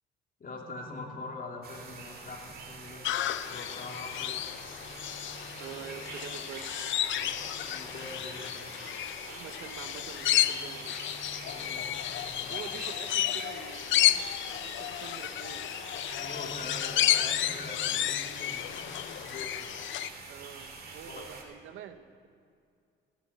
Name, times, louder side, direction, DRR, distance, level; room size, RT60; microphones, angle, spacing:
voice 1, 0.4-3.1 3.5-4.6 7.1-8.5 11.4-12.7 16.2-19.6 21.1-21.2, left 2 dB, 45° left, 0 dB, 2.9 m, -44 dB
sound 1, 1.6-21.4, right 3 dB, 50° right, 2.3 m, -46 dB
sound 2, 3.0-20.1, left 12 dB, 75° left, 0.6 m, -32 dB
voice 2, 5.6-6.9 9.3-10.9 12.5-15.7 20.3-22.3, right 9 dB, 85° right, 10 dB, 0.9 m, -46 dB
16.5 x 8.4 x 8.1 m, 2.3 s
cardioid pair, 90°, 20 cm